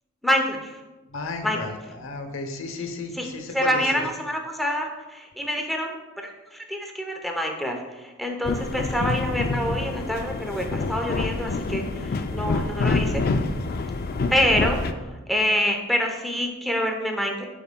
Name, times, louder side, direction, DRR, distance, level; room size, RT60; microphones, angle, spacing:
voice 1, 0.2-0.7 1.4-1.6 3.1-6.0 6.2-13.2 14.3-14.8 15.3-17.5, equal, ahead, 2 dB, 0.7 m, -26 dB
voice 2, 1.1-1.7 2.0-4.0, left 3 dB, 70° left, 5 dB, 0.9 m, -33 dB
sound 1, 8.4-14.9, left 3 dB, 50° left, 0.4 m, -27 dB
12.5 x 4.6 x 2.2 m, 1.1 s
head